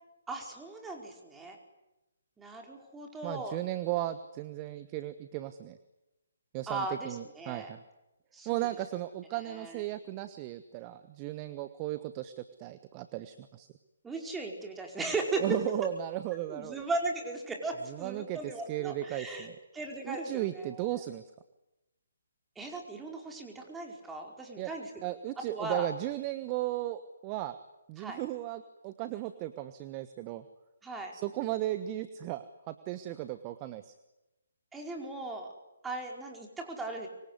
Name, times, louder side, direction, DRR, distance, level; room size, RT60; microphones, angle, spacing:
voice 1, 0.3-1.6 2.4-3.6 6.7-7.7 8.3-8.7 9.5-9.7 14.0-15.4 16.5-19.5 19.7-21.0 22.6-25.1 25.5-25.9 28.0-28.2 30.8-31.1 34.7-35.5 35.8-37.1, right 2 dB, 10° right, 1 dB, 4.9 m, -37 dB
voice 2, 3.2-5.8 6.5-7.8 8.4-13.7 15.4-16.8 17.9-19.6 20.0-21.2 24.6-24.7 25.0-27.6 27.9-30.4 31.1-33.9, right 15 dB, 25° right, 12 dB, 1.2 m, -36 dB
25.5 x 23.5 x 9.8 m, 0.97 s
figure-of-eight pair, 135°, 0 cm